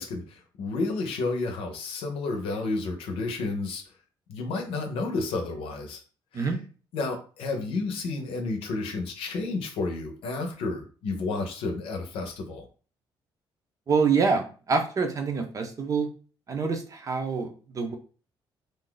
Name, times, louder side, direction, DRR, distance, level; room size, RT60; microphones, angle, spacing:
voice 1, 0.0-3.8 4.3-6.0 6.3-6.5 6.9-12.7, left 3 dB, 90° left, 4 dB, 0.7 m, -31 dB
voice 2, 13.9-16.1 16.5-17.9, right 5 dB, 35° right, 5 dB, 0.6 m, -26 dB
2.6 x 2.3 x 3.8 m, 0.38 s
cardioid pair, 105°, 9 cm